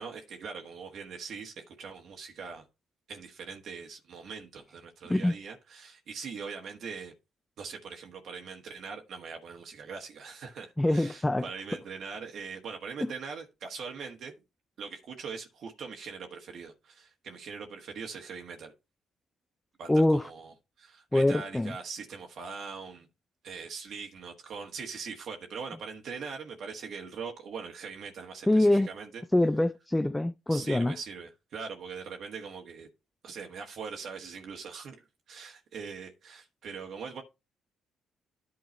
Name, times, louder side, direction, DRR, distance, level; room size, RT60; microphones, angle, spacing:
voice 1, 0.0-2.7 3.1-7.1 7.6-14.3 14.8-18.7 19.8-23.1 23.4-29.2 30.5-32.9 33.2-35.0 35.3-37.2, right 5 dB, 65° right, 1.4 m, -41 dB
voice 2, 10.8-11.5 19.9-20.3 21.1-21.7 28.5-28.9 29.3-31.0, left 1 dB, 15° left, 0.4 m, -24 dB
11.0 x 3.8 x 4.2 m
supercardioid pair, 55°, 0 cm